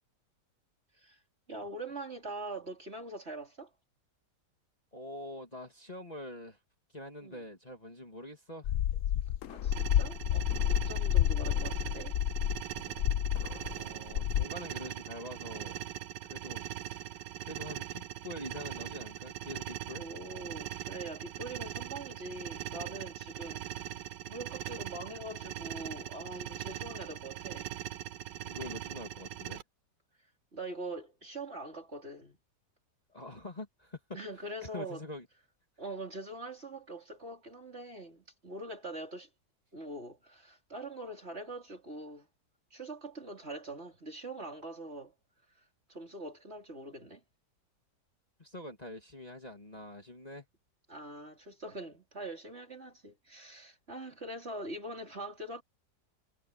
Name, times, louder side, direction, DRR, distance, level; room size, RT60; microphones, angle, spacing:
voice 1, 1.5-3.7 7.2-7.4 9.5-12.2 20.0-23.9 24.3-27.9 30.5-32.4 34.1-35.0 35.8-39.3 39.7-42.3 42.7-45.1 45.9-47.2 50.9-55.6, right 2 dB, 35° right, 4.5 m, -43 dB
voice 2, 4.9-6.6 6.9-8.7 13.7-15.8 16.2-17.0 17.4-20.0 28.4-29.6 33.1-34.0 34.3-35.3 48.4-50.5, left 1 dB, 20° left, 2.8 m, -45 dB
sound 1, 8.6-13.8 14.1-14.4, left 11 dB, 65° left, 0.8 m, -30 dB
sound 2, 9.7-29.6, right 12 dB, 90° right, 1.4 m, -41 dB
omnidirectional pair, 1.9 m